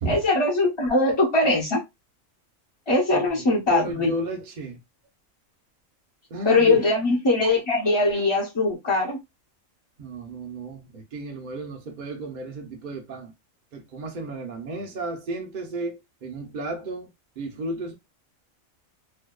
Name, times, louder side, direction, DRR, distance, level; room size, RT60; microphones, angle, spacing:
voice 1, 0.1-1.8 2.9-4.1 6.4-9.2, left 2 dB, 30° left, 0.5 m, -21 dB
voice 2, 3.7-4.8 6.3-6.8 10.0-13.3 13.7-17.1 17.4-17.9, right 2 dB, 50° right, 0.6 m, -33 dB
2.6 x 2.1 x 2.2 m
omnidirectional pair, 1.4 m